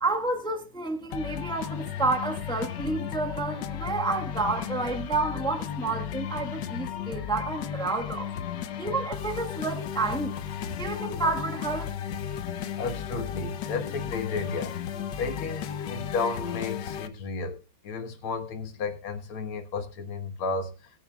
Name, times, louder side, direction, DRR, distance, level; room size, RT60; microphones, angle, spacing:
voice 1, 0.0-8.3 8.8-10.4 10.8-11.9, right 3 dB, 5° left, 0.9 m, -30 dB
sound 1, 1.1-17.1, left 9 dB, 65° left, 1.4 m, -34 dB
voice 2, 12.8-14.7 15.2-17.6 17.8-21.0, left 4 dB, 90° left, 2.3 m, -33 dB
22.5 x 8.7 x 2.3 m
omnidirectional pair, 2.3 m